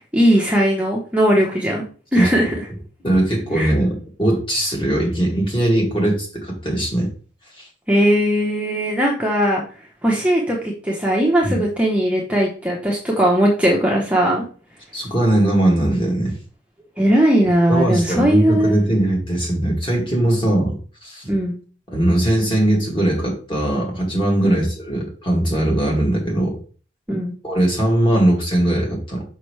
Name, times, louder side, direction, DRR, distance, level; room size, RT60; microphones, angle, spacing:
voice 1, 0.0-1.8 2.1-2.5 3.5-3.7 7.9-9.6 10.0-14.4 17.0-18.8 21.3-21.6 24.4-24.6 27.1-27.3, equal, 5° right, -2 dB, 0.9 m, -18 dB
voice 2, 3.0-7.1 7.6-7.7 11.4-11.6 14.9-16.3 17.7-21.3 21.9-26.6 27.4-29.2, right 1 dB, 25° left, -2 dB, 2.3 m, -20 dB
5.9 x 5.6 x 3.2 m, 0.39 s
head